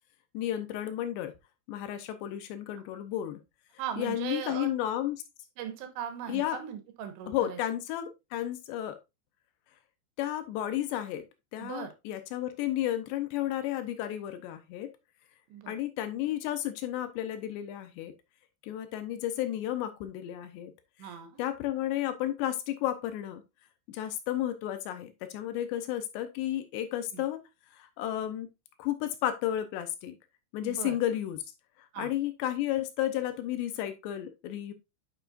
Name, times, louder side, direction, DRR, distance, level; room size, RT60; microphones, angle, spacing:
voice 1, 0.3-1.3 1.7-3.4 4.0-5.2 6.3-6.6 7.3-9.0 10.2-11.2 11.5-14.9 15.7-18.1 18.6-20.7 21.0-21.1 21.4-23.4 23.9-27.4 27.7-28.5 28.8-30.2 30.5-31.4 32.0-34.7, left 12 dB, 80° left, 9 dB, 2.7 m, -32 dB
voice 2, 3.8-4.7 5.6-7.6 11.6-11.9 15.5-15.8 21.0-21.4 27.1-27.2 30.6-31.0 31.9-32.1, right 9 dB, 75° right, 7 dB, 3.3 m, -38 dB
9.1 x 6.0 x 2.5 m, 0.23 s
omnidirectional pair, 5.4 m